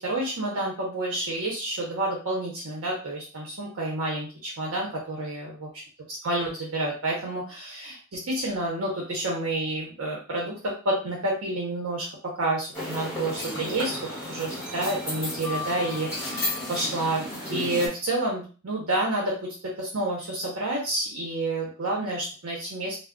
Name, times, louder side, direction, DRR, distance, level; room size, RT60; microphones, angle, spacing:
voice 1, 0.0-5.7 6.2-14.0 14.3-23.0, right 1 dB, 75° right, -2 dB, 0.7 m, -29 dB
sound 1, 12.7-17.9, left 1 dB, 15° left, 1.1 m, -33 dB
2.2 x 2.0 x 3.6 m, 0.36 s
head